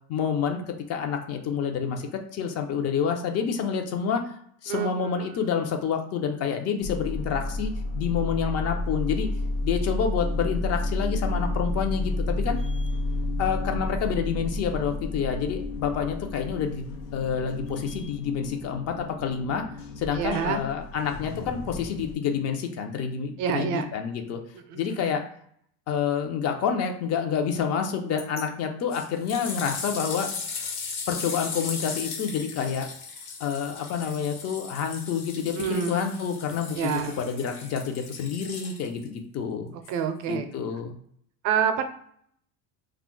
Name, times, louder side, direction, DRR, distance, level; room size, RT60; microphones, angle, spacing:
voice 1, 0.1-4.3 4.6-9.3 9.6-12.6 13.4-19.6 20.0-24.4 24.7-25.2 25.9-30.3 31.1-32.9 33.4-39.7 40.3-40.9, left 7 dB, 45° left, 5 dB, 0.6 m, -28 dB
sound 1, 6.8-22.1, left 2 dB, 85° left, 0.7 m, -31 dB
voice 2, 20.1-20.6 23.4-23.9 24.7-24.9 35.6-36.0 36.8-37.1 39.9-40.5 41.4-41.8, right 8 dB, 55° right, 8 dB, 0.5 m, -27 dB
sound 2, 28.2-28.4 28.9-39.1 39.8-39.9, left 5 dB, 65° left, 1.1 m, -37 dB
2.3 x 2.1 x 3.7 m, 0.64 s
supercardioid pair, 120°, 36 cm